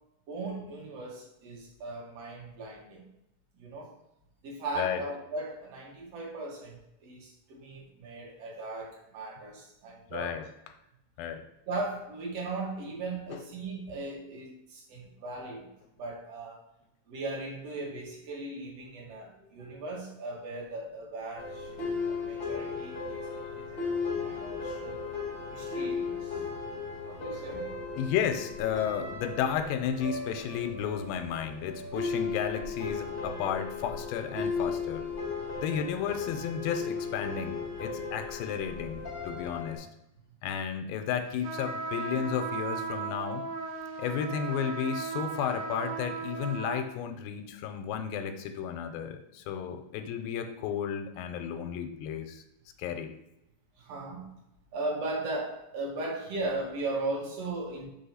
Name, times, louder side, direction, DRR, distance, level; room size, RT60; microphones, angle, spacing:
voice 1, 0.3-3.0 3.5-4.0 4.4-10.4 11.7-15.7 16.0-16.6 17.1-21.7 22.1-25.0 25.5-26.4 27.0-27.6 53.8-54.2 54.7-57.9, right 2 dB, 55° right, -2 dB, 2.2 m, -38 dB
voice 2, 10.1-10.5 11.2-11.4 13.3-13.4 28.0-35.1 35.6-39.9 40.4-43.4 44.0-52.4 52.8-53.1, left 8 dB, 85° left, 7 dB, 2.4 m, -33 dB
sound 1, 21.3-39.8, left 4 dB, 55° left, 0.6 m, -36 dB
sound 2, 41.4-46.9, right 5 dB, 85° right, 2.9 m, -36 dB
6.0 x 3.5 x 5.6 m, 0.86 s
omnidirectional pair, 4.1 m